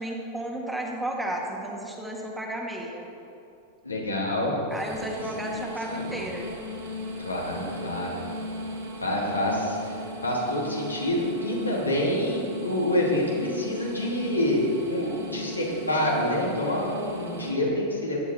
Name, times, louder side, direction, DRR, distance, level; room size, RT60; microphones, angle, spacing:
voice 1, 0.0-3.0 4.7-6.5, right 1 dB, 5° right, -1 dB, 1.9 m, -33 dB
voice 2, 3.8-4.6 4.9-5.0 5.9-6.3 7.2-8.2 9.0-14.6 14.9-18.2, left 1 dB, 85° left, -4 dB, 2.9 m, -27 dB
sound 1, 4.7-17.5, left 1 dB, 65° right, 3.1 m, -38 dB
16.0 x 10.5 x 4.3 m, 2.7 s
figure-of-eight pair, 90°, 0 cm